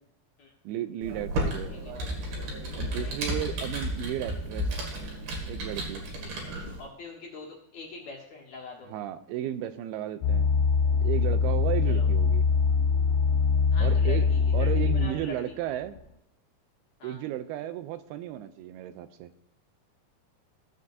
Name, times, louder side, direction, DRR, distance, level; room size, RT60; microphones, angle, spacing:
voice 1, 0.7-1.7 2.8-4.8 5.5-6.0 8.9-10.5 11.0-12.4 13.8-14.3 14.5-16.0 17.0-19.3, right 12 dB, 85° right, 11 dB, 2.5 m, -34 dB
Computer keyboard, 1.0-6.8, right 1 dB, 70° right, 3.7 m, -33 dB
voice 2, 2.9-3.4 6.2-8.9 11.8-12.1 13.4-15.6 17.0-17.2, left 4 dB, 55° left, -2 dB, 2.4 m, -44 dB
sound 1, 10.2-15.3 16.0-16.1, left 5 dB, 70° left, 2.3 m, -23 dB
16.0 x 7.6 x 2.7 m, 0.82 s
omnidirectional pair, 4.5 m